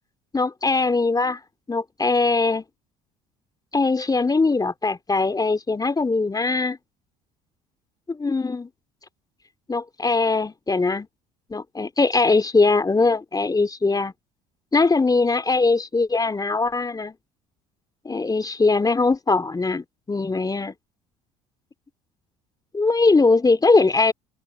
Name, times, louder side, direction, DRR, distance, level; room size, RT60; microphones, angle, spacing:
voice 1, 0.3-1.4 1.7-2.6 3.7-6.8 8.1-8.7 9.7-11.1 11.5-14.1 14.7-17.1 18.0-20.7 22.7-24.1, left 3 dB, 20° left, 3.0 m, -21 dB
hypercardioid pair, 65°, 20 cm